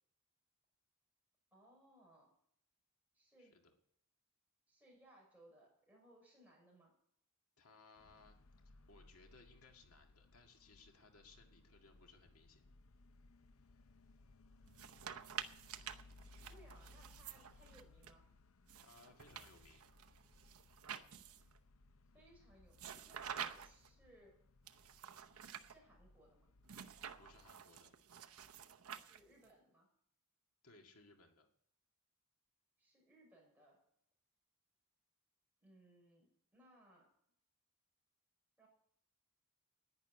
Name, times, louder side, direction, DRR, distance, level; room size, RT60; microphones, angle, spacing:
voice 1, 1.5-2.3 3.1-3.5 4.7-6.9 16.4-18.3 22.1-24.3 25.6-26.5 28.9-29.9 32.8-33.8 35.6-36.3 36.5-37.1 38.6-38.7, right 1 dB, 10° right, -3 dB, 6.4 m, -65 dB
voice 2, 3.4-3.7 7.6-8.4 8.7-12.6 16.4-16.7 18.8-19.8 27.2-27.9 30.6-31.5, left 3 dB, 85° left, 3 dB, 2.0 m, -64 dB
sound 1, 8.0-27.5, left 2 dB, 70° left, 0.7 m, -65 dB
sound 2, 14.7-18.1 18.7-21.6 22.7-23.9 24.7-25.7 26.7-29.5, right 8 dB, 85° right, 0.8 m, -50 dB
11.0 x 9.6 x 9.4 m, 0.68 s
head